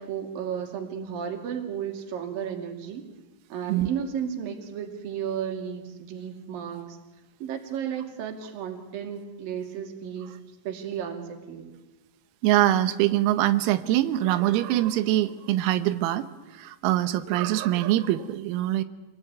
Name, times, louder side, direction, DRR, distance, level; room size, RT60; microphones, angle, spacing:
voice 1, 0.0-3.1 3.5-7.0 7.4-10.3 10.7-11.7, right 8 dB, 50° right, 6 dB, 3.6 m, -33 dB
voice 2, 12.4-18.8, right 14 dB, 90° right, 12 dB, 3.8 m, -24 dB
27.5 x 21.5 x 9.5 m, 1.1 s
omnidirectional pair, 5.9 m